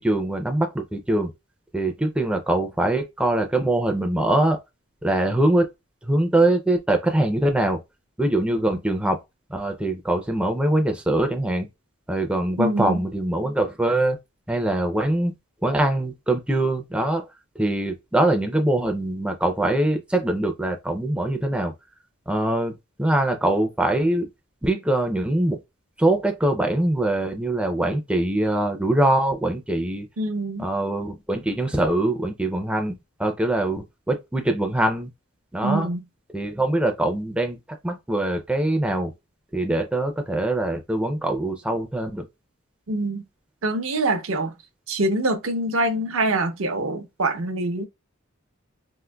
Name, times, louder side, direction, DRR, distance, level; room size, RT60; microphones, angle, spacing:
voice 1, 0.0-1.3 1.7-4.6 5.0-5.7 6.0-7.8 8.2-9.2 9.5-11.7 12.1-14.2 14.5-15.3 15.6-17.3 17.6-21.7 22.3-22.7 23.0-24.3 24.6-25.6 26.0-30.1 30.6-35.1 35.5-35.9 36.3-39.1 39.5-42.2, right 1 dB, 5° right, 0.4 m, -23 dB
voice 2, 12.6-13.0 30.2-30.7 35.6-36.0 42.9-43.3 43.6-44.5 44.9-47.9, right 2 dB, 70° right, 0.7 m, -24 dB
3.7 x 2.5 x 2.2 m
head